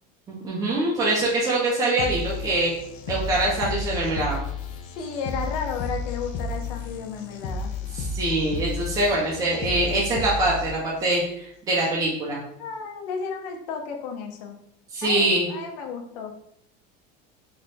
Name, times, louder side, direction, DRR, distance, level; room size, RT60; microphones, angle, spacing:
voice 1, 0.3-2.7 3.1-4.4 7.9-11.2 11.7-12.4 14.9-15.5, right 2 dB, 15° right, -4 dB, 0.5 m, -23 dB
sound 1, 2.0-11.0, left 4 dB, 40° left, 0.4 m, -32 dB
voice 2, 4.8-7.7 12.6-14.6 15.0-16.3, left 6 dB, 75° left, 3 dB, 0.8 m, -33 dB
3.3 x 2.2 x 4.0 m, 0.71 s
cardioid pair, 170°, 20 cm